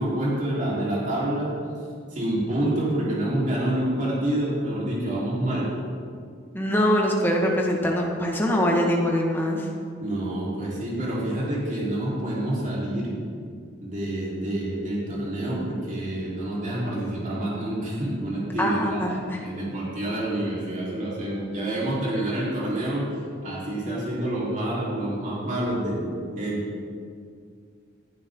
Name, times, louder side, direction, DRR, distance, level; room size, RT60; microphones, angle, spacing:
voice 1, 0.0-1.5 2.1-5.7 10.0-13.1 13.8-23.1 23.4-26.6, right 1 dB, 40° right, -6 dB, 4.1 m, -27 dB
voice 2, 6.5-9.7 18.6-19.4, equal, 10° left, -1 dB, 1.8 m, -23 dB
20.0 x 11.0 x 3.9 m, 2.2 s
head